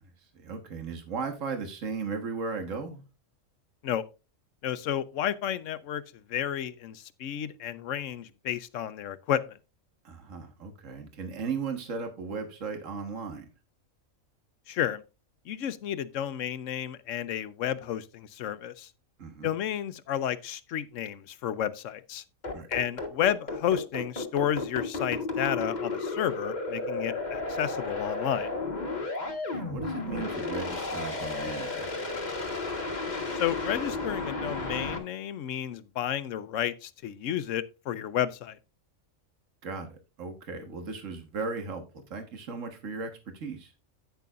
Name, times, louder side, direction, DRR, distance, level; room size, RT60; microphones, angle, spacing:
voice 1, 0.0-3.0 10.0-13.5 19.2-19.5 22.5-22.7 29.3-31.9 39.6-41.8 42.1-43.7, right 4 dB, 70° right, 1.8 m, -36 dB
voice 2, 4.6-6.0 6.3-9.6 14.7-15.0 15.5-18.9 19.4-22.2 22.7-28.5 33.3-38.6, left 10 dB, 75° left, 1.0 m, -31 dB
sound 1, 22.4-35.0, left 3 dB, 35° left, 1.5 m, -33 dB
10.5 x 9.4 x 2.4 m
omnidirectional pair, 1.4 m